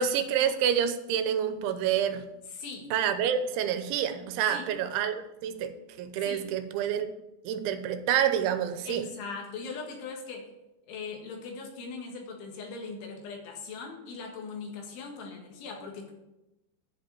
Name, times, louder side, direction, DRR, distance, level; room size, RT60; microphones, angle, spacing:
voice 1, 0.0-2.2 2.9-5.7 6.0-7.1 7.4-9.0, right 9 dB, 85° right, 10 dB, 3.2 m, -28 dB
voice 2, 2.5-2.9 4.5-4.6 6.2-6.4 8.9-10.5 10.9-16.1, left 4 dB, 80° left, 1 dB, 4.3 m, -40 dB
11.0 x 5.2 x 8.4 m, 0.96 s
omnidirectional pair, 5.3 m